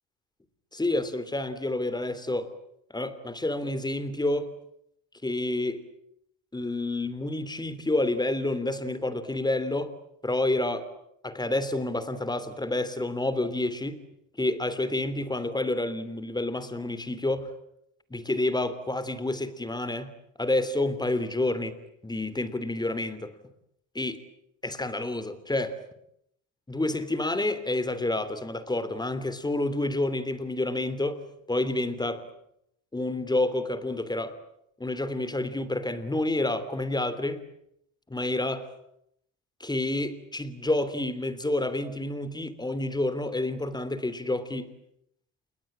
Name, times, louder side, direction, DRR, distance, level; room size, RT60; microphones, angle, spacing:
voice 1, 0.7-2.5 2.9-4.5 5.2-5.8 6.5-9.9 10.2-10.9 11.2-14.0 14.4-17.5 18.1-20.1 20.4-21.7 22.0-23.3 23.9-24.2 24.6-25.8 26.7-31.2 31.5-32.3 32.9-34.3 34.8-37.4 38.1-38.7 39.6-44.7, left 2 dB, 10° left, 14 dB, 3.1 m, -29 dB
28.5 x 21.5 x 8.8 m, 0.76 s
cardioid pair, 110°, 36 cm